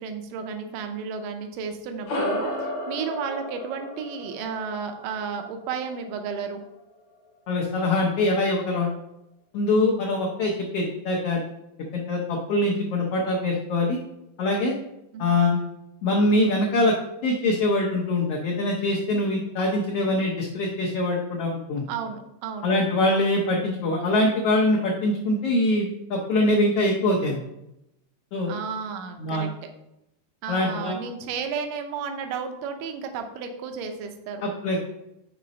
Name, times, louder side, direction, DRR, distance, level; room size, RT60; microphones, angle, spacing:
voice 1, 0.0-6.6 15.1-15.2 21.9-22.7 28.5-29.7 30.4-34.4, right 6 dB, 85° right, 5 dB, 2.3 m, -33 dB
sound 1, 2.1-6.8, left 1 dB, 55° left, 1.4 m, -33 dB
voice 2, 7.5-8.9 9.5-11.4 11.9-14.0 14.4-14.7 15.2-15.6 16.0-16.9 17.2-21.8 22.6-27.4 28.3-28.5 29.2-29.5 30.5-31.0 34.4-34.8, left 2 dB, 80° left, -1 dB, 1.3 m, -23 dB
5.7 x 4.1 x 5.1 m, 0.87 s
omnidirectional pair, 3.8 m